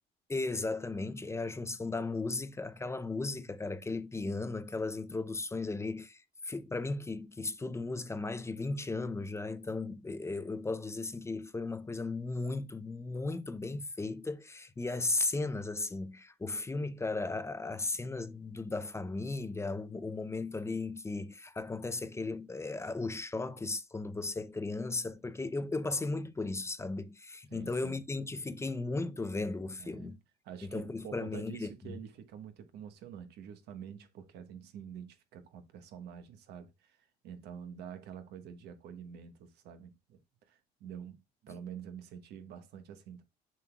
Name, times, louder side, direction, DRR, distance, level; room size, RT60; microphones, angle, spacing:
voice 1, 0.3-30.2 30.6-31.7, left 3 dB, 15° left, 0.6 m, -36 dB
voice 2, 27.5-28.0 29.8-30.2 30.4-37.0 37.2-43.2, right 8 dB, 75° right, 1.3 m, -47 dB
7.1 x 6.1 x 2.3 m
cardioid pair, 110°, 17 cm